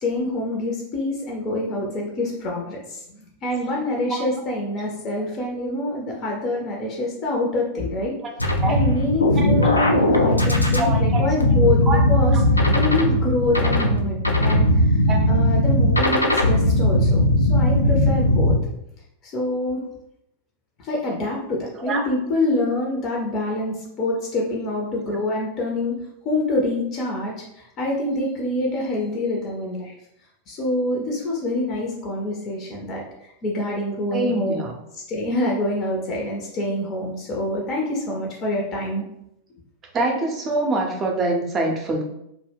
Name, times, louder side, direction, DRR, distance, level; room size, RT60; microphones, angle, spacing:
voice 1, 0.0-8.1 8.7-12.4 12.7-18.6 19.2-19.8 20.8-26.0 26.2-29.9 30.5-34.5 35.1-39.0, left 1 dB, 35° left, -2 dB, 0.5 m, -26 dB
sound 1, 8.4-18.6, left 1 dB, 85° left, 0.3 m, -18 dB
voice 2, 9.4-9.8 10.8-11.2 11.9-12.0 15.1-15.2 16.0-16.1 21.9-22.1 34.1-34.7 39.9-42.0, right 2 dB, 25° right, 2 dB, 0.5 m, -25 dB
2.2 x 2.1 x 3.3 m, 0.79 s
figure-of-eight pair, 90°, 0 cm